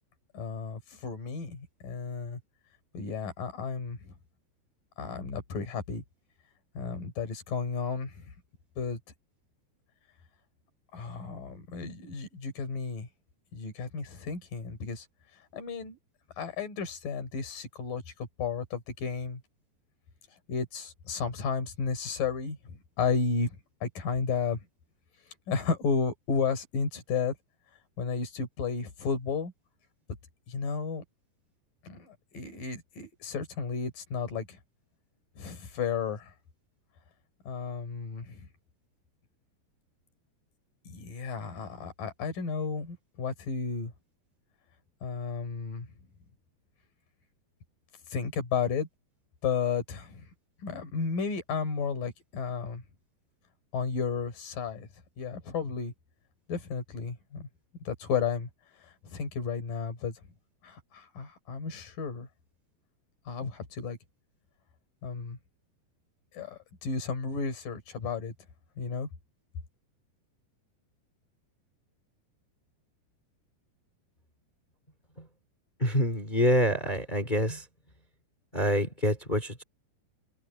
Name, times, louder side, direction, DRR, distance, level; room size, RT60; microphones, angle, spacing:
voice 1, 0.3-2.4 2.9-4.1 5.0-6.0 6.8-8.3 8.8-9.0 10.9-13.1 13.5-15.1 15.5-16.0 16.4-18.0 18.4-19.4 20.5-24.6 25.5-27.4 28.0-29.5 30.5-31.0 31.8-34.6 35.4-36.3 37.5-38.5 40.9-43.9 45.0-45.9 48.1-48.9 49.4-50.3 50.6-52.8 53.7-54.9 55.2-55.9 56.5-57.5 57.8-58.5 58.8-60.2 60.6-62.3 63.3-64.0 65.0-65.4 66.3-68.3 68.8-69.1, left 5 dB, 55° left, 5.7 m, -33 dB
voice 2, 75.8-77.6 78.5-79.6, equal, 15° left, 2.1 m, -26 dB
omnidirectional pair, 4.9 m